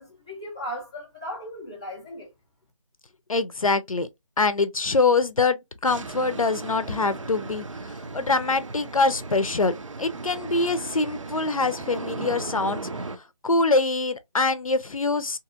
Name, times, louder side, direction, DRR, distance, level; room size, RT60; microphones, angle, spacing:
voice 1, 0.0-2.3, equal, 10° left, 0.4 m, -37 dB
voice 2, 3.3-4.1 4.4-9.7 10.0-13.1 13.4-15.4, left 3 dB, 85° left, 0.6 m, -24 dB
sound 1, 5.8-13.2, right 3 dB, 70° right, 0.5 m, -36 dB
2.9 x 2.8 x 2.3 m
figure-of-eight pair, 160°, 17 cm